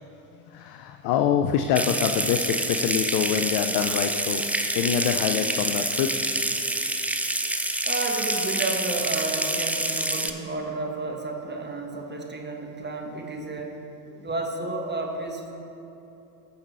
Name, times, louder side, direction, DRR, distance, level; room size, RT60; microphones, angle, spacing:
voice 1, 0.5-4.4 4.7-6.2, left 9 dB, 50° left, 6 dB, 0.6 m, -25 dB
Water tap faucet / Sink (filling or washing) / Trickle dribble, 1.8-10.3, right 1 dB, 5° right, 0.4 m, -27 dB
sound 1, 3.7-4.8 5.1-5.2, left 1 dB, 10° left, 2.1 m, -45 dB
voice 2, 7.8-13.8 14.2-15.5, right 2 dB, 20° right, 2 dB, 1.4 m, -31 dB
14.5 x 5.6 x 4.2 m, 3.0 s
hypercardioid pair, 60°, 48 cm